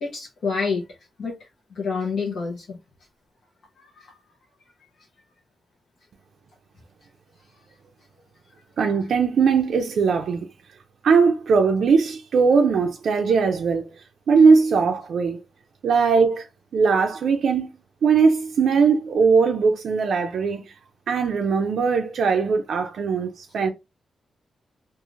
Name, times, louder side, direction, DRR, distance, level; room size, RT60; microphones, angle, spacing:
voice 1, 0.0-0.8 1.2-1.3 1.7-2.8 3.8-4.1, left 5 dB, 75° left, 0.7 m, -28 dB
voice 2, 8.8-10.5 11.0-13.9 14.3-15.4 15.8-16.5 16.7-17.7 18.0-20.6 21.1-23.7, right 5 dB, 75° right, 0.3 m, -19 dB
3.0 x 2.4 x 2.4 m
wide cardioid pair, 125°, 0 cm